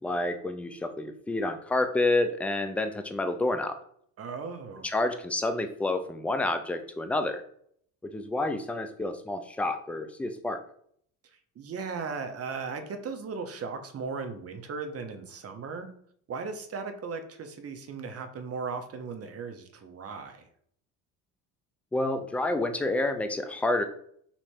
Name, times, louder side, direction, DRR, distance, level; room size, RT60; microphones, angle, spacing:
voice 1, 0.0-3.8 4.8-7.4 8.0-10.6 21.9-23.8, left 2 dB, 5° left, 8 dB, 0.3 m, -29 dB
voice 2, 4.2-4.9 11.6-15.9 16.3-20.5, right 5 dB, 35° right, 6 dB, 0.7 m, -37 dB
3.2 x 2.8 x 4.4 m, 0.63 s
hypercardioid pair, 70°, 44 cm